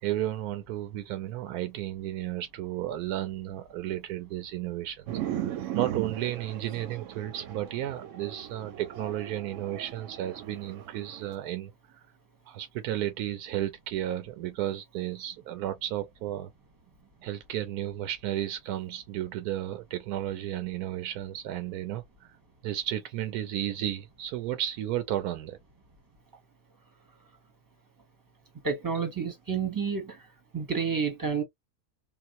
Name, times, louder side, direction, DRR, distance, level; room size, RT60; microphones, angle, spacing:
voice 1, 0.0-5.1 5.4-12.0 12.5-16.5 17.2-22.4 22.6-25.6, right 12 dB, 90° right, 1.1 m, -33 dB
sound 1, 5.1-11.3, right 12 dB, 65° right, 0.9 m, -37 dB
voice 2, 28.6-30.2 30.5-31.4, right 6 dB, 15° right, 0.8 m, -29 dB
3.8 x 2.3 x 2.6 m
omnidirectional pair, 1.6 m